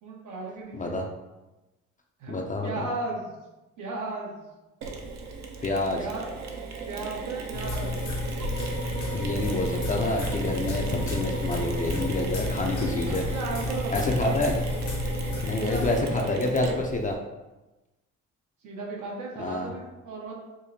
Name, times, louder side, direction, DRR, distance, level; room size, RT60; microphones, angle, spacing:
voice 1, 0.0-1.0 2.2-3.3 3.8-4.5 5.9-6.3 6.9-7.9 12.7-14.6 15.6-16.7 18.6-20.3, right 3 dB, 85° right, -2 dB, 1.0 m, -36 dB
voice 2, 2.3-2.7 5.6-6.0 9.1-13.2 13.9-14.5 15.4-17.2 19.4-19.7, left 2 dB, 25° left, 1 dB, 0.4 m, -28 dB
Mechanisms, 4.8-17.1, right 4 dB, 65° right, 0.6 m, -36 dB
sound 1, 7.5-16.0, left 2 dB, 85° left, 0.9 m, -31 dB
5.0 x 2.1 x 2.7 m, 1.1 s
cardioid pair, 90°, 30 cm